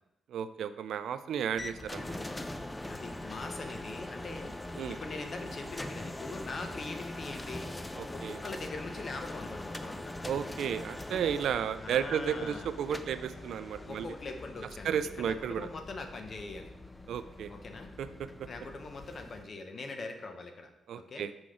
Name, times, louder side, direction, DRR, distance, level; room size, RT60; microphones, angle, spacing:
voice 1, 0.3-2.1 4.8-5.0 8.0-8.4 10.2-14.1 14.8-15.7 17.1-17.5 18.0-18.1 20.9-21.3, right 8 dB, 75° right, 11 dB, 0.3 m, -33 dB
sound 1, 1.6-19.4, left 1 dB, 15° left, 0.4 m, -42 dB
voice 2, 2.9-4.5 4.9-7.7 8.1-10.1 11.8-12.7 13.9-16.7 17.5-17.9 18.5-20.7 21.1-21.3, left 3 dB, 45° left, 5 dB, 0.8 m, -42 dB
5.9 x 4.8 x 3.8 m, 0.92 s
cardioid pair, 105°, 0 cm